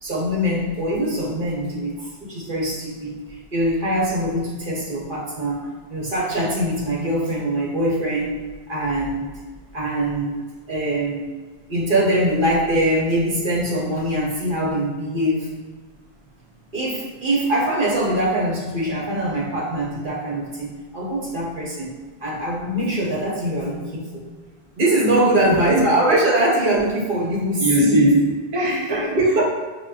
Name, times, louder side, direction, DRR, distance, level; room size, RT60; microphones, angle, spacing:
voice 1, 0.0-8.4 8.7-9.4 9.7-11.3 11.7-15.5 16.7-24.2 24.8-28.0 29.1-29.4, right 1 dB, 55° right, -4 dB, 1.0 m, -23 dB
voice 2, 25.4-25.9 27.6-29.2, right 1 dB, 30° right, -4 dB, 0.6 m, -20 dB
6.0 x 2.2 x 2.4 m, 1.4 s
omnidirectional pair, 1.1 m